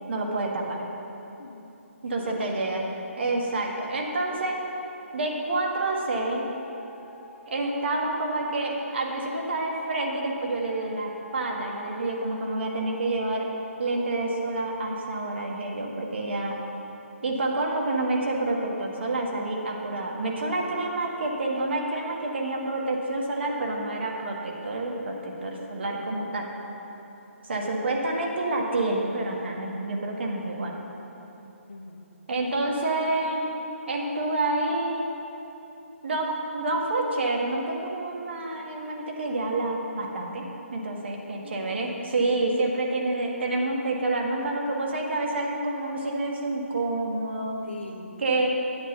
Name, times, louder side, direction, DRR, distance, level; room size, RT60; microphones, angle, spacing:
voice 1, 0.1-0.9 2.0-2.8 3.2-4.6 5.1-6.5 7.5-13.5 13.8-16.6 17.2-26.5 27.4-30.7 32.3-33.5 33.9-35.1 36.0-47.6 48.2-48.6, right 2 dB, 50° right, -1 dB, 1.6 m, -28 dB
voice 2, 1.4-1.7 2.1-2.7 31.7-32.0 41.4-42.0 47.6-48.2, left 3 dB, 50° left, 2 dB, 1.2 m, -42 dB
sound 1, 3.8-14.5, equal, 25° left, 1.7 m, -50 dB
10.0 x 8.1 x 5.7 m, 3.0 s
figure-of-eight pair, 140°, 8 cm